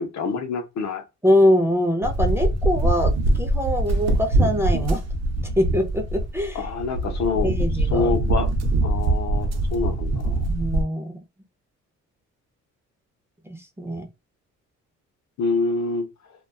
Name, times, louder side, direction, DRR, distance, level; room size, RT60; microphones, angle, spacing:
voice 1, 0.0-1.0 6.5-7.5 7.9-8.5 8.8-10.4 15.4-16.1, left 4 dB, 65° left, 0.7 m, -26 dB
voice 2, 1.2-3.1 3.4-5.0 5.6-6.6 7.4-8.1 10.5-11.1 13.5-14.1, left 1 dB, 10° right, 0.5 m, -23 dB
sound 1, 2.0-10.8, right 2 dB, 60° right, 0.6 m, -23 dB
2.4 x 2.2 x 2.3 m
cardioid pair, 90°, 30 cm